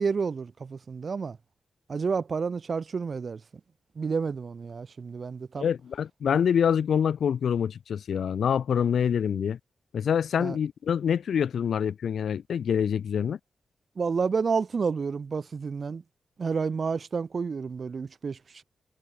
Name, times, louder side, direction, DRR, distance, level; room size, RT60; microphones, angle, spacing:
voice 1, 0.0-1.4 1.9-3.4 3.9-5.7 10.4-10.6 14.0-16.0 16.4-18.6, right 5 dB, 40° right, 1.7 m, -30 dB
voice 2, 5.6-9.6 9.9-13.4, left 8 dB, 75° left, 2.1 m, -26 dB
wide cardioid pair, 155°, 0 cm